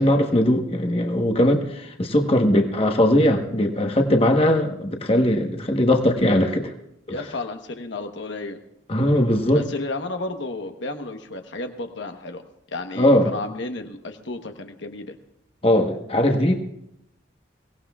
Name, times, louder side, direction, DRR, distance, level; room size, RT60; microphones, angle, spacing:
voice 1, 0.0-6.7 8.9-9.6 13.0-13.3 15.6-16.5, left 1 dB, 30° left, 3 dB, 1.1 m, -19 dB
voice 2, 7.1-8.6 9.5-12.4 12.7-15.2, left 2 dB, 75° left, 5 dB, 1.1 m, -32 dB
23.0 x 18.0 x 2.4 m, 0.79 s
head